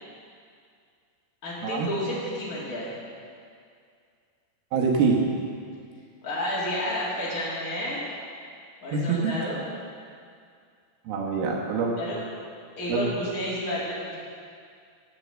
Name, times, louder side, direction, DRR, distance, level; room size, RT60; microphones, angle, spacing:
voice 1, 1.4-2.9 6.2-8.0 8.8-9.6 12.0-12.2 12.8-14.1, left 1 dB, 45° left, -8 dB, 1.1 m, -31 dB
voice 2, 4.7-5.2 8.9-9.3 11.1-11.9 12.9-13.1, right 5 dB, 70° right, -1 dB, 2.7 m, -24 dB
9.3 x 8.5 x 7.6 m, 2.3 s
omnidirectional pair, 5.4 m